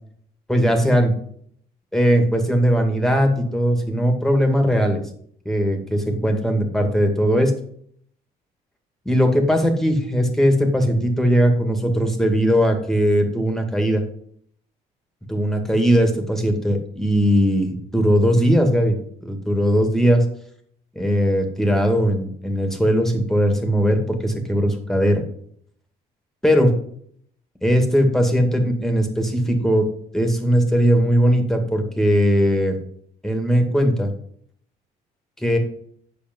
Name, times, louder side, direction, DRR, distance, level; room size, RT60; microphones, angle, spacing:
voice 1, 0.5-1.1 1.9-5.0 5.5-7.5 9.1-14.0 15.3-19.0 19.2-20.3 21.0-25.2 26.4-26.7 27.6-29.9 30.1-32.8 33.2-34.1 35.4-35.6, equal, ahead, 4 dB, 2.2 m, -19 dB
8.8 x 6.9 x 5.4 m, 0.63 s
cardioid pair, 110°, 17 cm